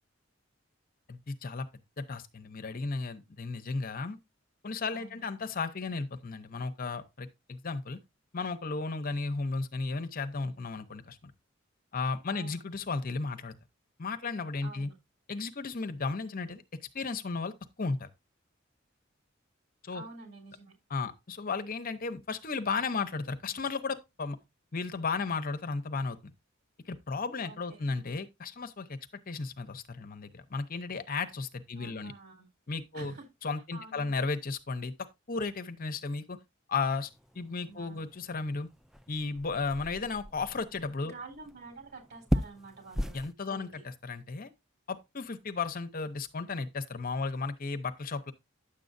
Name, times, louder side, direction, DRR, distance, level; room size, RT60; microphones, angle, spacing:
voice 1, 1.1-1.7 2.0-4.2 4.6-8.0 8.3-11.3 11.9-13.5 14.0-14.9 15.3-16.6 16.9-18.1 19.8-20.0 20.9-24.4 24.7-26.3 26.9-32.1 32.7-33.1 33.4-36.4 36.7-37.1 37.3-38.7 39.1-41.1 43.1-44.5 44.9-48.3, left 4 dB, 45° left, 0.8 m, -34 dB
voice 2, 4.9-5.2 12.3-12.6 14.6-14.9 19.9-20.7 27.4-28.0 31.8-32.5 32.9-33.2 33.7-34.1 37.5-38.1 41.1-43.1 43.5-43.8, right 3 dB, 55° right, 4.0 m, -48 dB
sound 1, 36.8-43.3, equal, ahead, 0.4 m, -38 dB
10.0 x 7.6 x 2.6 m
head